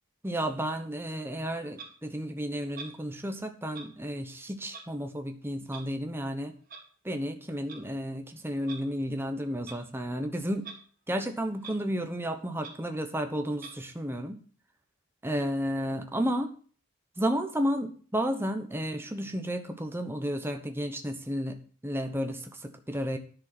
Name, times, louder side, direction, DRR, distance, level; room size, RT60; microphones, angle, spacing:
voice 1, 0.2-6.5 7.0-10.7 11.1-14.4 15.2-16.5 17.2-23.2, equal, 10° right, 5 dB, 1.0 m, -32 dB
Clock, 1.7-1.9 2.7-3.0 3.7-3.9 4.7-4.9 5.7-5.8 6.7-6.8 7.5-7.8 8.6-8.8 9.6-9.8 10.6-10.8 11.1-11.2 11.6-11.8 12.2-12.3 12.6-12.8 13.6-13.8, right 5 dB, 40° right, 2.0 m, -44 dB
10.5 x 6.3 x 6.1 m, 0.43 s
head